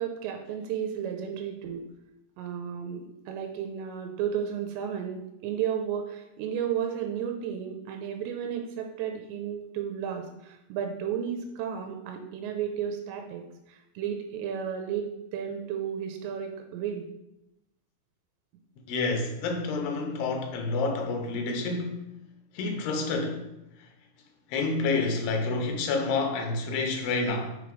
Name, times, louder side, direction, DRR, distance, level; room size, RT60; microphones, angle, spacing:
voice 1, 0.0-1.8 2.4-17.1, right 8 dB, 90° right, 2.8 m, -33 dB
voice 2, 18.9-22.0 22.5-23.4 23.8-23.9 24.5-27.6, left 3 dB, 70° left, 2.3 m, -28 dB
6.3 x 5.1 x 4.9 m
omnidirectional pair, 5.0 m